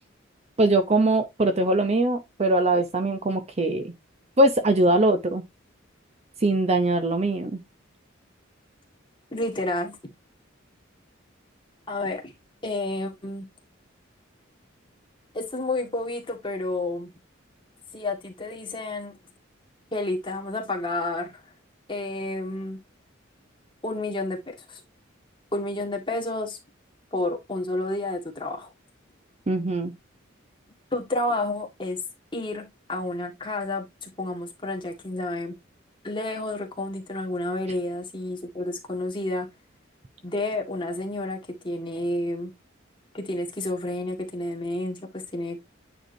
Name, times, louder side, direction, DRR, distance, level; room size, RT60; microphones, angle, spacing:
voice 1, 0.6-3.9 4.4-5.4 6.4-7.6 29.5-29.9, right 2 dB, 30° right, 0.6 m, -22 dB
voice 2, 9.3-10.0 11.9-12.3 12.6-13.5 15.3-17.1 17.9-19.1 19.9-21.3 21.9-22.8 23.8-24.8 25.5-26.6 27.1-28.7 30.9-32.0 32.3-35.5 36.0-39.5 40.2-41.4 41.6-42.5 43.1-45.6, left 2 dB, 25° left, 1.8 m, -30 dB
9.0 x 4.9 x 2.7 m
head